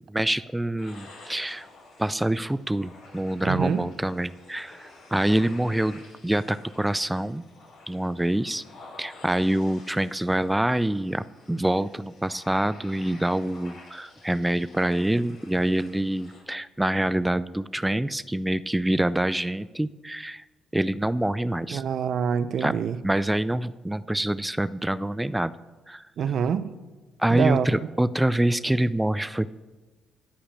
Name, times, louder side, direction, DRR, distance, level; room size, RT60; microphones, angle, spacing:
voice 1, 0.1-1.7 2.0-7.4 7.9-8.6 9.0-20.4 20.7-21.8 22.6-22.7 23.0-25.5 25.9-26.0 27.2-29.5, right 1 dB, 10° right, 16 dB, 0.5 m, -26 dB
sound 1, 0.8-16.4, left 2 dB, 65° left, 5.5 m, -50 dB
voice 2, 3.4-3.8 21.7-23.0 26.2-26.7 27.3-27.7, right 7 dB, 65° right, 13 dB, 0.8 m, -25 dB
15.0 x 5.7 x 8.4 m, 1.2 s
hypercardioid pair, 50°, 0 cm